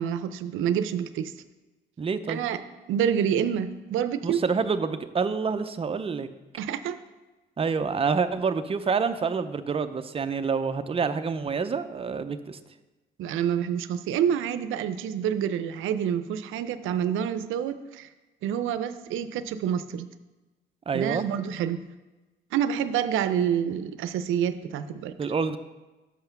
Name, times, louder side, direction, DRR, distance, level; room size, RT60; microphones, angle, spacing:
voice 1, 0.0-1.3 2.3-2.6 2.9-4.4 6.6-7.0 13.2-18.1 18.4-20.1 20.9-21.8 22.5-25.2, right 9 dB, 85° right, 12 dB, 0.5 m, -27 dB
voice 2, 2.0-2.4 4.2-6.3 7.6-12.6 20.9-21.2 25.2-25.6, right 5 dB, 30° right, 10 dB, 0.5 m, -27 dB
6.4 x 5.6 x 5.8 m, 1.2 s
cardioid pair, 90°, 20 cm